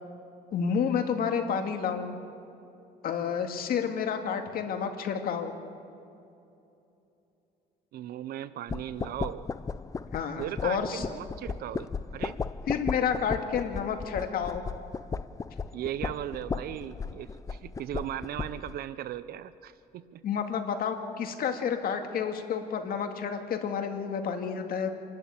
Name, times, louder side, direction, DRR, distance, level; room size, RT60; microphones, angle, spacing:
voice 1, 0.5-2.2 3.0-5.5 10.1-11.0 12.7-14.6 20.2-24.9, left 7 dB, 60° left, 5 dB, 2.1 m, -30 dB
voice 2, 7.9-9.5 10.4-12.4 15.7-20.2, right 11 dB, 65° right, 14 dB, 0.7 m, -37 dB
sound 1, 8.7-18.8, left 5 dB, 20° left, 0.5 m, -36 dB
27.0 x 12.5 x 8.7 m, 2.8 s
cardioid pair, 110°, 17 cm